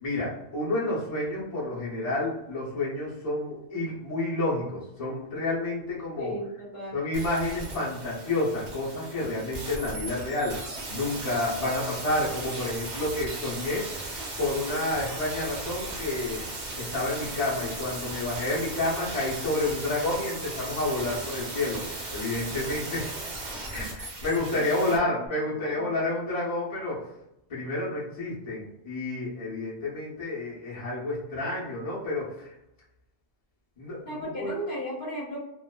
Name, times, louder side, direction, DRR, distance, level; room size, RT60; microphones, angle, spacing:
voice 1, 0.0-6.3 6.9-13.9 14.4-16.4 16.8-21.8 22.1-23.1 23.7-27.0 27.5-32.5 33.8-34.5, left 2 dB, 35° left, -7 dB, 0.8 m, -30 dB
voice 2, 6.2-7.0 24.5-26.1 34.1-35.4, equal, 55° left, -6 dB, 1.1 m, -36 dB
sound 1, 7.1-25.0 25.3-25.4, right 2 dB, 50° right, 0.7 m, -37 dB
2.5 x 2.4 x 2.2 m, 0.86 s
omnidirectional pair, 1.1 m